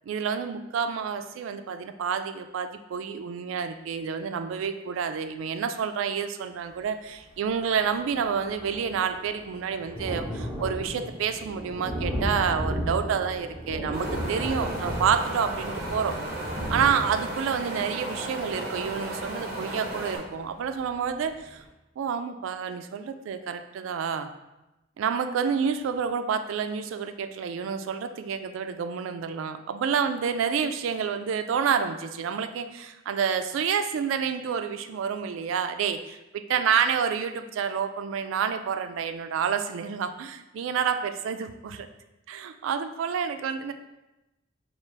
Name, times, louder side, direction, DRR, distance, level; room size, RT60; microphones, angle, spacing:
voice 1, 0.1-16.2 16.7-21.6 22.0-24.3 25.0-41.9 42.3-43.7, right 7 dB, 80° right, 10 dB, 0.3 m, -29 dB
Thunder, 7.5-7.6 7.8-20.4 20.9-21.0 21.3-21.4, equal, 10° left, 0.8 m, -35 dB
Wind, 13.9-20.2, right 1 dB, 50° right, 0.8 m, -35 dB
4.6 x 2.4 x 3.1 m, 0.98 s
head